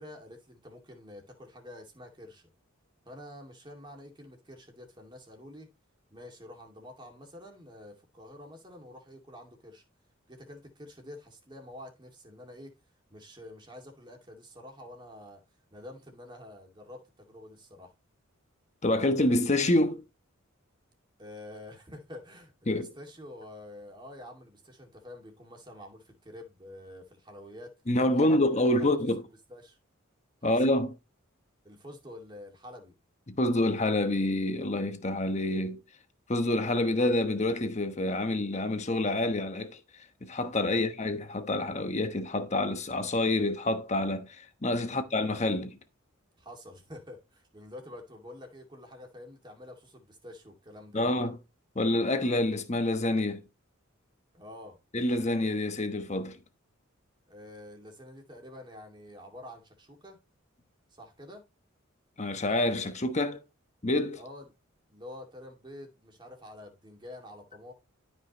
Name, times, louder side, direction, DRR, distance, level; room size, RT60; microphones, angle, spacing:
voice 1, 0.0-2.5 3.1-5.7 6.1-9.8 10.3-12.7 13.1-15.4 15.7-17.9 21.2-27.7 28.1-29.0 29.5-29.8 30.4-30.6 31.6-32.9 46.4-51.0 54.3-54.8 57.3-60.2 60.9-61.4 64.1-64.5 64.9-67.7, left 1 dB, 20° right, 2.4 m, -48 dB
voice 2, 18.8-20.0 22.7-22.9 27.9-29.2 30.4-30.9 33.3-35.8 36.3-39.8 40.2-45.8 50.9-51.4 51.7-53.4 54.9-56.4 62.2-63.4 63.8-64.2, left 1 dB, 35° left, 1.1 m, -27 dB
12.5 x 5.6 x 3.1 m
head